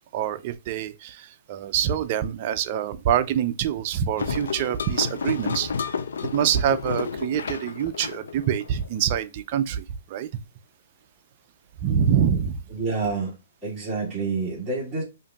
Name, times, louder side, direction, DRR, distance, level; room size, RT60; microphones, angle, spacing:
voice 1, 0.1-5.7 6.3-9.8 10.1-10.3 11.8-12.6, right 9 dB, 40° right, 0.4 m, -25 dB
sound 1, 4.2-9.1, left 5 dB, 80° left, 0.4 m, -31 dB
voice 2, 12.7-13.4 13.6-15.0, right 4 dB, 10° right, 1.6 m, -28 dB
5.0 x 2.6 x 2.2 m
hypercardioid pair, 145°, 0 cm